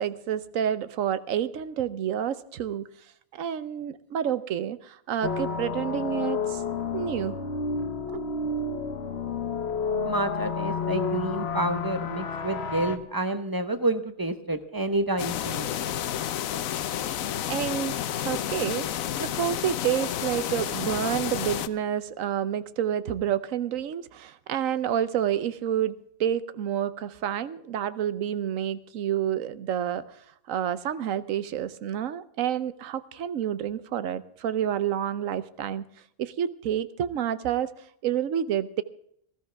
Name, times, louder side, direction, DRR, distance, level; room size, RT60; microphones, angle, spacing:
voice 1, 0.0-2.9 3.3-6.6 6.9-7.4 8.1-8.2 17.5-25.9 26.2-35.8 36.2-38.8, right 10 dB, 75° right, 15 dB, 1.1 m, -29 dB
sound 1, 5.2-13.0, left 4 dB, 55° left, 1.1 m, -30 dB
voice 2, 10.0-15.7, right 2 dB, 20° right, 9 dB, 0.8 m, -29 dB
sound 2, 15.2-21.7, left 10 dB, 80° left, 1.1 m, -30 dB
19.0 x 13.0 x 3.4 m, 0.69 s
omnidirectional pair, 1.4 m